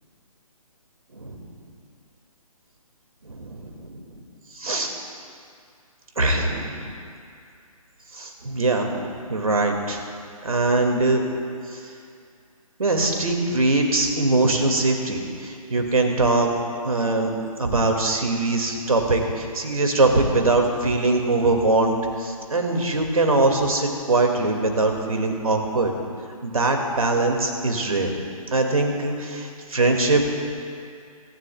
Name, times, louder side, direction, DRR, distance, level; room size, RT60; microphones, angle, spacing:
voice 1, 3.2-4.0 4.5-4.9 6.2-6.9 8.1-10.0 10.4-11.2 11.7-11.8 12.8-16.5 16.8-17.3 17.6-25.9 26.4-28.1 28.5-30.3, right 2 dB, 70° right, 2 dB, 2.2 m, -22 dB
24.0 x 14.0 x 2.4 m, 2.4 s
figure-of-eight pair, 140°, 19 cm